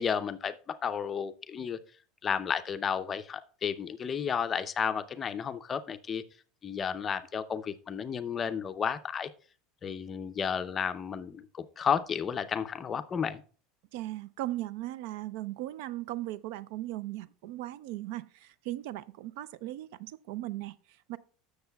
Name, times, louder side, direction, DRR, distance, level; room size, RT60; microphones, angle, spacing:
voice 1, 0.0-1.8 2.2-6.2 6.6-9.3 9.8-13.4, left 7 dB, 20° left, 0.5 m, -32 dB
voice 2, 13.9-21.2, right 15 dB, 60° right, 0.5 m, -38 dB
15.0 x 6.5 x 2.3 m
supercardioid pair, 170°, 0 cm